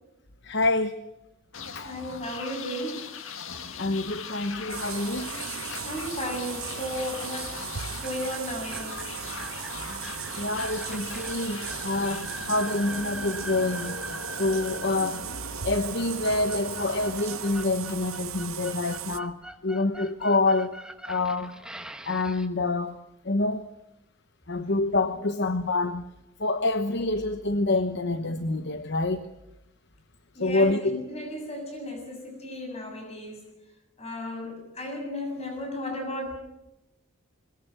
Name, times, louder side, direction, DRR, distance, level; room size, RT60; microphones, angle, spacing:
voice 1, 0.4-1.0 1.7-1.9 3.3-5.3 5.7-5.9 7.9-8.0 10.3-15.2 15.6-20.8 21.1-21.5 22.0-23.0 23.2-23.7 24.5-26.1 26.4-29.3 30.3-31.0, left 2 dB, 55° left, 9 dB, 1.0 m, -27 dB
sound 1, 1.5-18.3, left 5 dB, 70° left, 1.9 m, -40 dB
voice 2, 1.8-3.0 5.8-7.7 8.0-9.1 25.2-25.3 30.4-33.4 34.0-36.4, equal, 30° left, 4 dB, 7.1 m, -35 dB
sound 2, 4.7-19.2, right 9 dB, 75° right, 0.9 m, -37 dB
sound 3, 7.4-22.5, right 1 dB, 5° right, 1.2 m, -43 dB
22.0 x 21.0 x 7.7 m, 0.92 s
head